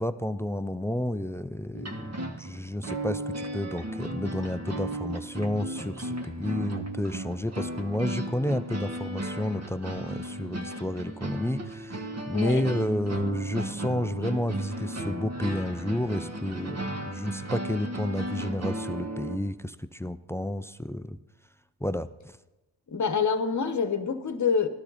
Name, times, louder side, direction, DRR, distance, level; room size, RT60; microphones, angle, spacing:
voice 1, 0.0-21.2 21.8-22.1, left 1 dB, 5° left, 14 dB, 0.4 m, -31 dB
sound 1, 1.7-19.4, right 1 dB, 30° right, 1.4 m, -35 dB
voice 2, 12.3-12.7 22.9-24.7, left 6 dB, 35° left, 10 dB, 1.2 m, -26 dB
13.0 x 11.5 x 4.1 m, 1.0 s
supercardioid pair, 40°, 49 cm